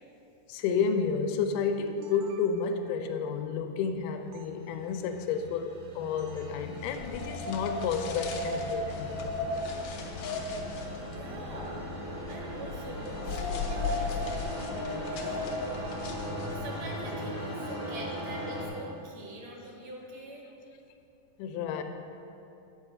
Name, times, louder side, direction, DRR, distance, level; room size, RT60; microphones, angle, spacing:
voice 1, 0.5-9.2 21.4-21.8, left 6 dB, 90° left, 6 dB, 2.2 m, -31 dB
sound 1, 1.7-2.9 4.3-4.5 6.2-6.6, right 7 dB, 85° right, 2.1 m, -54 dB
sound 2, 4.6-18.7, equal, 45° right, 0.6 m, -39 dB
sound 3, 6.8-16.8, left 3 dB, 70° left, 1.6 m, -36 dB
voice 2, 11.1-11.8 12.3-15.5 16.5-20.5, right 1 dB, 65° right, 0 dB, 1.9 m, -44 dB
9.1 x 4.8 x 6.7 m, 2.8 s
omnidirectional pair, 3.7 m